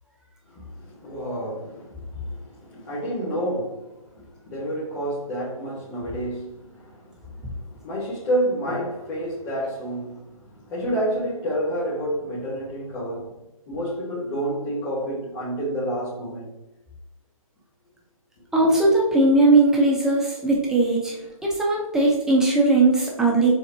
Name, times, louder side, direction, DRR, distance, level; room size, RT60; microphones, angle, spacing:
voice 1, 0.5-3.9 4.1-16.6, right 1 dB, 20° left, 1.2 m, -29 dB
voice 2, 18.5-21.2 21.4-23.5, right 2 dB, 5° right, 0.7 m, -19 dB
6.9 x 2.5 x 2.7 m
hypercardioid pair, 150°, 18 cm